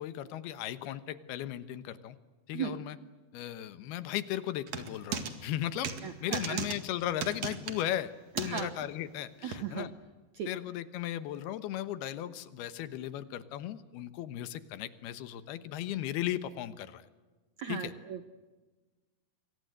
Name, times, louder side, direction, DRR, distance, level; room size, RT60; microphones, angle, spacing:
voice 1, 0.0-2.2 2.5-3.0 3.3-5.9 6.2-9.9 10.5-17.1 17.7-17.9, left 12 dB, 80° left, 13 dB, 3.1 m, -36 dB
sound 1, 4.7-5.3 5.8-6.0 6.3-6.8 7.2-7.8 8.4-8.6 9.5-9.6, right 7 dB, 50° right, 2.7 m, -35 dB
voice 2, 6.0-6.6 8.4-8.7 9.4-9.9 10.3-10.5 17.6-18.3, right 8 dB, 70° right, 10 dB, 1.7 m, -37 dB
28.0 x 24.0 x 7.9 m, 1.3 s
omnidirectional pair, 4.6 m